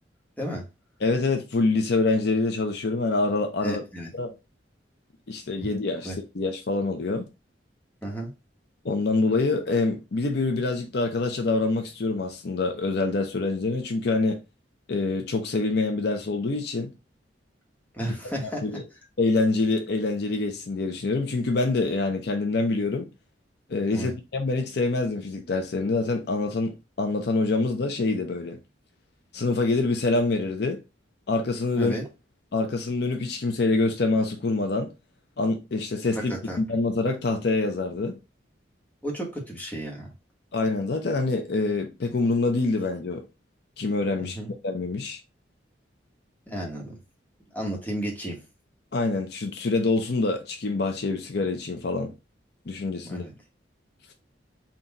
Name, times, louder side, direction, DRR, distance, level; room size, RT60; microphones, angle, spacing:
voice 1, 1.0-3.8 4.2-4.3 5.3-7.3 8.8-14.4 14.9-16.9 18.0-18.8 19.2-23.1 23.7-28.6 29.3-30.8 31.3-31.9 32.5-34.9 35.4-36.3 36.6-38.2 40.5-43.2 43.8-44.4 44.6-45.2 48.9-52.1 52.7-53.2, left 3 dB, 60° left, 0.6 m, -26 dB
voice 2, 3.6-4.1 6.0-6.2 8.0-8.3 17.9-18.8 23.9-24.1 31.7-32.1 36.1-36.6 39.0-40.1 44.2-44.5 46.5-46.9 47.5-48.4 53.0-53.3, right 1 dB, 10° left, 1.1 m, -33 dB
3.9 x 2.3 x 4.0 m
head